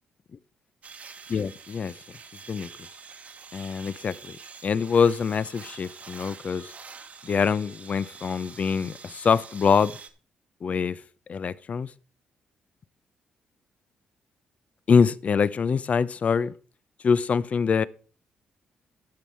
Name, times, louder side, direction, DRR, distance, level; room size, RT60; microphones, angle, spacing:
sound 1, 0.8-10.1, right 5 dB, 50° right, 1.2 m, -46 dB
voice 1, 1.3-1.9 2.5-2.7 3.5-4.4 4.6-6.7 7.2-10.0 10.6-11.0 11.3-11.9 14.9-16.5 17.0-17.8, left 6 dB, 45° left, 0.6 m, -24 dB
10.5 x 6.2 x 5.5 m
cardioid pair, 85°, 3 cm